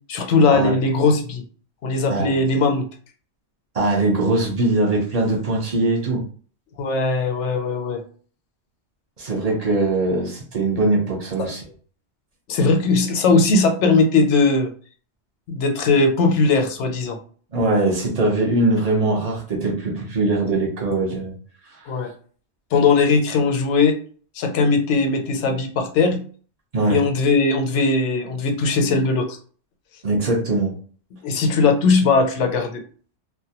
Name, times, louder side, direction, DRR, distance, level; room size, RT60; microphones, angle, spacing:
voice 1, 0.1-1.4 1.8-2.9 6.8-8.0 11.4-11.5 12.5-14.7 15.5-17.2 21.9-22.1 22.7-24.0 24.4-26.2 26.9-29.4 31.2-32.8, left 3 dB, 85° left, 5 dB, 0.9 m, -19 dB
voice 2, 3.7-6.2 9.2-11.6 17.5-21.3 26.7-27.0 30.0-30.8, right 2 dB, 40° right, -1 dB, 0.8 m, -21 dB
2.2 x 2.0 x 2.8 m, 0.43 s
omnidirectional pair, 1.2 m